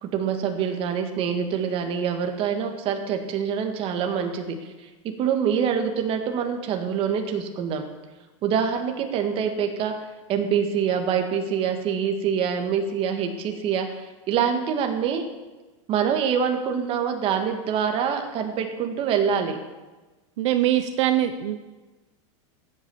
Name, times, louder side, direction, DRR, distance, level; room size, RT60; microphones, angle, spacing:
voice 1, 0.0-7.8 8.4-9.9 10.3-15.2 15.9-19.6, right 7 dB, 35° right, 4 dB, 1.8 m, -25 dB
voice 2, 20.4-21.6, right 12 dB, 70° right, 8 dB, 0.9 m, -22 dB
14.5 x 8.7 x 7.0 m, 1.2 s
supercardioid pair, 140°, 16 cm